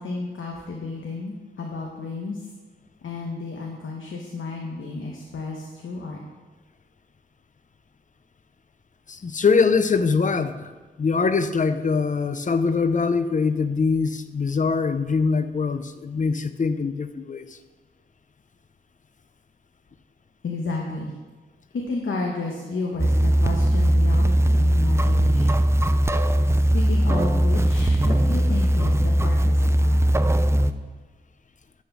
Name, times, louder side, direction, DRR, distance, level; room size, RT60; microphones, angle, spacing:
voice 1, 0.0-2.5 3.0-6.2 20.4-21.1 21.7-25.5 26.5-30.0, left 3 dB, 85° left, 0 dB, 1.0 m, -32 dB
voice 2, 9.1-10.7 11.0-17.6, left 4 dB, 40° left, 11 dB, 0.5 m, -23 dB
sound 1, 23.0-30.7, right 1 dB, 15° right, 0.3 m, -19 dB
10.0 x 4.3 x 5.9 m, 1.3 s
wide cardioid pair, 100°, 20 cm